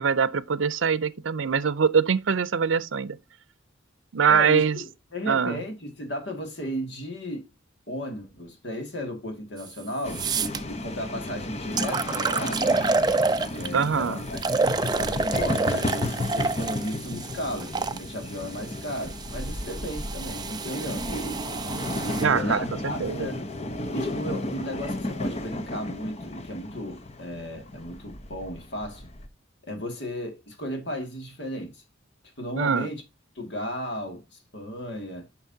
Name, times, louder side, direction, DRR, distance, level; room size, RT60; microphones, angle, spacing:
voice 1, 0.0-3.2 4.1-4.8 5.3-5.6 13.7-14.2 22.2-23.3 32.6-32.9, right 6 dB, 85° right, 0.5 m, -23 dB
voice 2, 4.3-7.5 7.9-12.6 13.5-14.4 14.8-21.1 22.0-23.4 23.9-29.1 29.7-31.8 32.4-33.0 33.4-35.3, equal, 65° left, 2.1 m, -35 dB
sound 1, 9.6-9.7 10.1-10.6 11.3-11.4 11.8-13.8 14.4-18.0 18.8-22.2, right 4 dB, 20° right, 0.3 m, -28 dB
sound 2, 10.0-29.3, left 1 dB, 35° left, 0.8 m, -33 dB
9.3 x 5.9 x 2.7 m
head